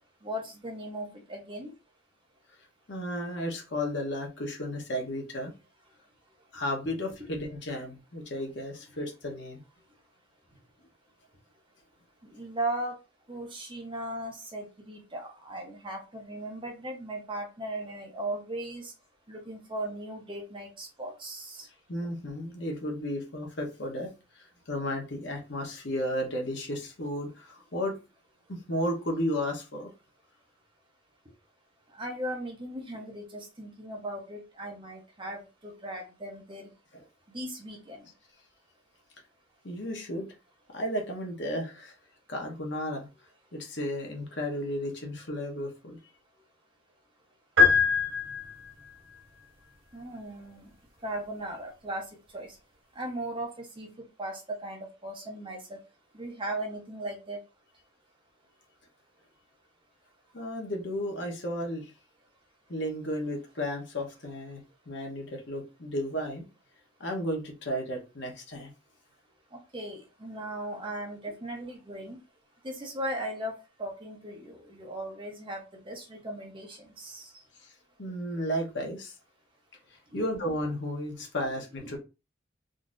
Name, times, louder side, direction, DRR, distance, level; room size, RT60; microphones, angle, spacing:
voice 1, 0.2-1.7 12.2-13.0 13.3-18.9 19.3-21.7 31.9-36.7 37.3-38.0 49.9-50.7 51.0-52.0 52.3-52.6 53.0-55.8 56.1-57.4 69.5-72.2 72.6-77.3 80.1-80.2, right 1 dB, 25° right, 1 dB, 0.9 m, -37 dB
voice 2, 2.9-5.5 6.5-9.6 21.9-28.0 28.5-29.9 36.9-37.0 39.6-40.3 40.7-41.9 42.3-43.1 43.5-46.0 60.3-61.9 62.7-66.5 67.0-68.7 77.6-77.7 78.0-79.2 79.9-82.0, equal, 60° left, 2 dB, 1.0 m, -33 dB
sound 1, 47.6-48.9, left 5 dB, 85° right, 1.4 m, -23 dB
3.8 x 2.8 x 2.5 m, 0.28 s
head